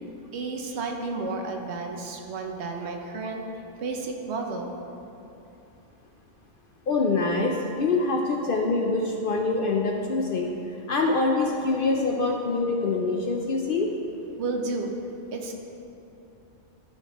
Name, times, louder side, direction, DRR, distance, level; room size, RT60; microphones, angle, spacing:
voice 1, 0.3-3.4 3.8-4.7 14.4-14.9 15.3-15.5, right 3 dB, 65° right, 2 dB, 0.9 m, -32 dB
voice 2, 6.9-10.5 10.9-13.9, left 3 dB, 60° left, 0 dB, 0.6 m, -25 dB
12.0 x 4.4 x 3.0 m, 2.9 s
omnidirectional pair, 1.3 m